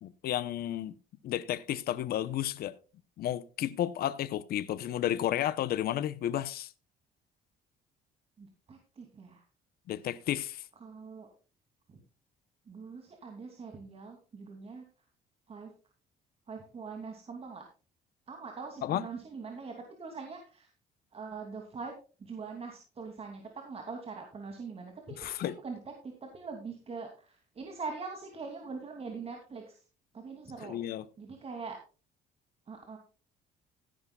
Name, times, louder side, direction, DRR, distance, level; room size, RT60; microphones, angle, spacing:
voice 1, 0.0-0.9 1.2-2.7 3.2-6.7 9.9-10.6 18.8-19.0 25.2-25.5 30.6-31.0, left 12 dB, 65° left, 0.9 m, -32 dB
voice 2, 8.4-9.4 10.8-11.3 11.9-12.0 12.7-14.8 15.5-15.7 16.5-17.7 18.3-20.7 21.1-21.9 22.2-29.8 30.1-30.8 31.2-31.8 32.7-33.0, right 4 dB, 35° right, 2.8 m, -43 dB
17.0 x 10.5 x 2.4 m
cardioid pair, 110°, 17 cm